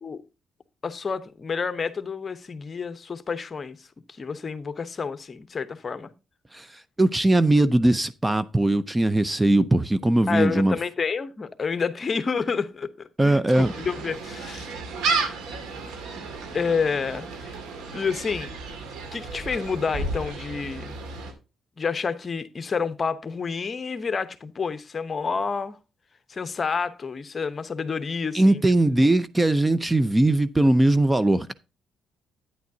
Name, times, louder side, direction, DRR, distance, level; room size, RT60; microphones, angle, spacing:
voice 1, 0.8-3.8 4.2-6.1 10.3-14.7 16.5-17.6 17.9-18.6 19.1-21.0 21.8-25.8 26.3-28.6, left 5 dB, 35° left, 0.9 m, -29 dB
voice 2, 6.5-10.8 13.2-13.7 28.3-31.5, right 1 dB, 15° right, 0.5 m, -20 dB
Gull seagull, 13.5-21.3, right 3 dB, 85° right, 2.0 m, -32 dB
9.3 x 9.2 x 2.7 m
cardioid pair, 90°, 0 cm